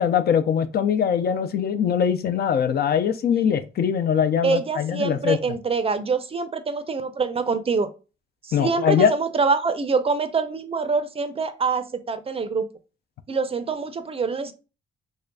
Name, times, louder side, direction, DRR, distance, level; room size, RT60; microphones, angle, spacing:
voice 1, 0.0-5.4 8.5-9.1, left 8 dB, 55° left, 0.4 m, -22 dB
voice 2, 4.4-7.9 8.4-12.7 13.3-14.5, right 4 dB, 30° right, 0.5 m, -25 dB
3.7 x 3.2 x 2.2 m
cardioid pair, 90°, 20 cm